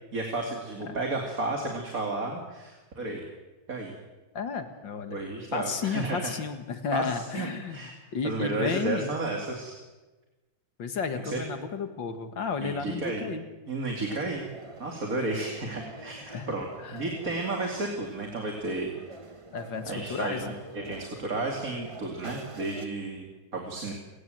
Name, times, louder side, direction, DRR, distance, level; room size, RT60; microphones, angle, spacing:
voice 1, 0.1-3.2 3.7-4.0 5.1-6.3 6.9-7.9 8.2-9.8 11.2-11.4 12.6-13.3 13.7-14.5 14.8-16.7 16.9-18.9 19.9-23.9, right 2 dB, 45° right, 1 dB, 2.9 m, -32 dB
voice 2, 4.3-5.2 5.5-7.8 8.1-9.1 10.8-13.5 16.3-16.5 16.8-17.0 19.5-20.6, left 5 dB, 70° left, 8 dB, 2.5 m, -32 dB
sound 1, 14.1-22.9, right 2 dB, 20° right, 0.9 m, -45 dB
28.5 x 18.5 x 7.8 m, 1.2 s
omnidirectional pair, 2.2 m